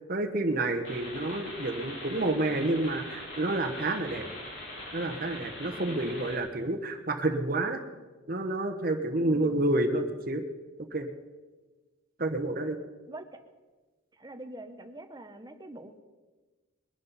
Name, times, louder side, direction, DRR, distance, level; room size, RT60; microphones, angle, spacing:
voice 1, 0.1-4.2 4.9-7.8 8.3-10.4 10.9-11.1 12.2-12.8, right 2 dB, 45° right, 5 dB, 1.1 m, -29 dB
sound 1, 0.8-6.4, left 1 dB, 65° left, 4.3 m, -42 dB
voice 2, 5.9-6.2 9.2-9.6 13.1-13.4 14.1-16.0, right 1 dB, 20° right, 7 dB, 0.8 m, -45 dB
21.5 x 11.5 x 4.1 m, 1.3 s
head